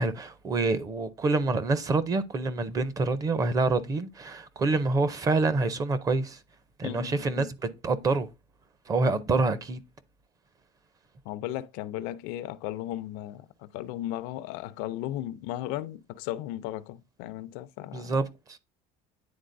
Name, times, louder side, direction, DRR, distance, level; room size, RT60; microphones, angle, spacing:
voice 1, 0.0-6.4 6.8-8.3 8.9-9.8 17.9-18.6, right 3 dB, 25° right, 0.5 m, -27 dB
voice 2, 6.8-7.5 11.3-18.2, left 14 dB, 85° left, 0.5 m, -36 dB
9.5 x 3.9 x 2.6 m
cardioid pair, 155°, 15 cm